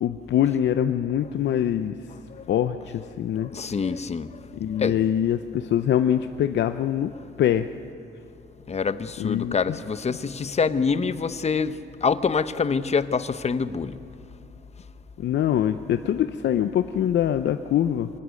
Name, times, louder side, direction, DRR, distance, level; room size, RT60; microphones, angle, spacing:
voice 1, 0.0-1.9 2.5-3.5 4.5-7.1 7.4-7.7 9.2-9.8 15.2-18.1, left 10 dB, 65° left, 9 dB, 0.6 m, -24 dB
voice 2, 3.4-4.4 4.7-5.0 8.7-14.0, left 5 dB, 35° left, 13 dB, 0.9 m, -26 dB
24.0 x 19.5 x 6.4 m, 2.6 s
cardioid pair, 90°, 20 cm